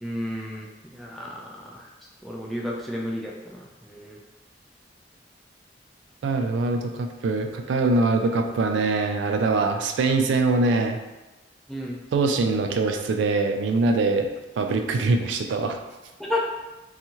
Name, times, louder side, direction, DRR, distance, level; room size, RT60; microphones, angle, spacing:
voice 1, 0.0-1.9 2.2-4.2 11.7-12.0 15.0-15.1 16.2-16.5, left 1 dB, ahead, -4 dB, 0.3 m, -32 dB
voice 2, 6.2-11.0 12.1-15.8, right 3 dB, 80° right, 5 dB, 0.3 m, -23 dB
2.7 x 2.4 x 2.8 m, 1.0 s
head